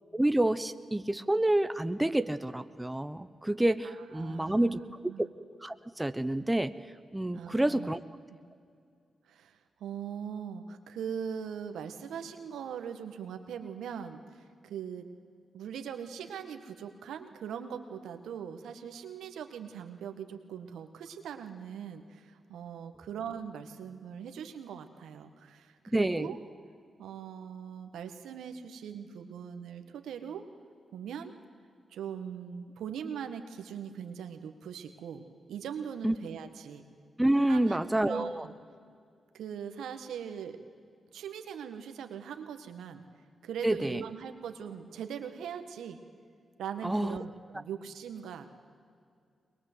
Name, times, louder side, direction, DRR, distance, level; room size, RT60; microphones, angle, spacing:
voice 1, 0.1-4.8 5.2-5.3 5.6-6.7 7.1-8.0 25.9-26.4 36.0-36.1 37.2-38.5 43.6-44.0 46.8-47.2, right 1 dB, 15° right, 12 dB, 1.0 m, -28 dB
voice 2, 3.8-4.8 5.1-5.3 7.3-7.9 9.3-15.1 15.5-26.4 27.0-30.4 30.9-31.3 31.9-36.8 37.5-38.5 39.3-40.6 41.1-43.0 43.4-46.0 46.6-48.5, right 8 dB, 90° right, 8 dB, 1.6 m, -41 dB
22.0 x 21.5 x 8.2 m, 2.3 s
cardioid pair, 55°, 0 cm